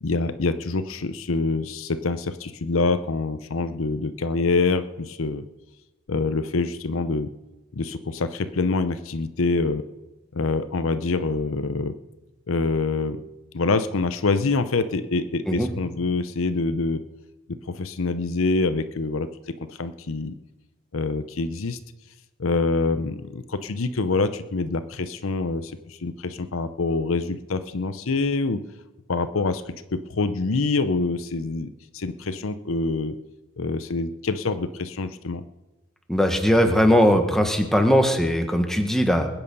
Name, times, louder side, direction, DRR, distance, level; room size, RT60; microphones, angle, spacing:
voice 1, 0.0-5.4 6.1-7.3 7.8-9.8 10.3-11.9 12.5-13.2 13.5-17.0 17.5-19.3 19.7-20.3 20.9-21.8 22.4-28.6 29.1-29.6 29.9-31.7 31.9-33.2 33.6-35.4, left 3 dB, 70° left, 11 dB, 0.7 m, -25 dB
voice 2, 36.1-39.3, equal, ahead, 4 dB, 1.4 m, -19 dB
20.5 x 9.1 x 5.4 m, 1.1 s
head